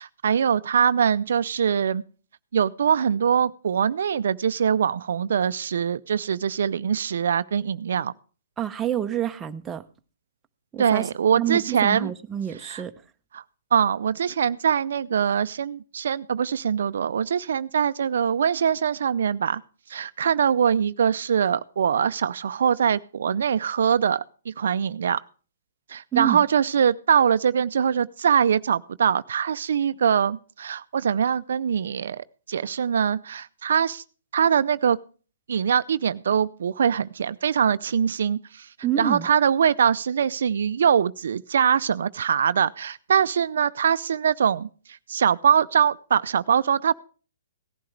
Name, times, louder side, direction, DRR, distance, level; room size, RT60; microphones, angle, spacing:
voice 1, 0.0-2.0 2.5-8.1 10.8-12.1 12.6-12.8 13.3-13.4 13.7-19.6 19.9-25.2 25.9-34.0 34.3-35.0 35.5-38.7 39.0-46.9, right 7 dB, 70° right, 0.5 m, -23 dB
voice 2, 8.6-9.8 10.7-11.1 11.4-12.9 26.1-26.4 38.8-39.3, right 10 dB, 15° right, 0.8 m, -27 dB
17.5 x 11.5 x 3.3 m
hypercardioid pair, 140°, 0 cm